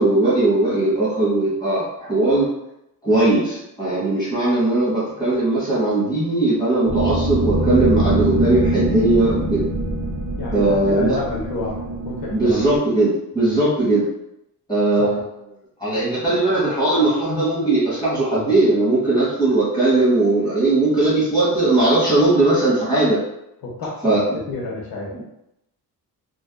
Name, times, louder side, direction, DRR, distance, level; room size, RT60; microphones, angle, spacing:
voice 1, 0.0-2.5 3.0-9.6 10.5-11.1 12.3-13.1 13.3-14.1 14.7-15.2 15.8-23.2 24.0-24.2, right 2 dB, 10° left, -9 dB, 1.3 m, -19 dB
sound 1, 6.9-12.8, right 1 dB, 40° right, 0.6 m, -23 dB
voice 2, 10.4-12.7 15.0-15.2 23.6-25.1, left 2 dB, 75° left, -2 dB, 0.9 m, -29 dB
2.6 x 2.2 x 2.2 m, 0.83 s
wide cardioid pair, 160°, 37 cm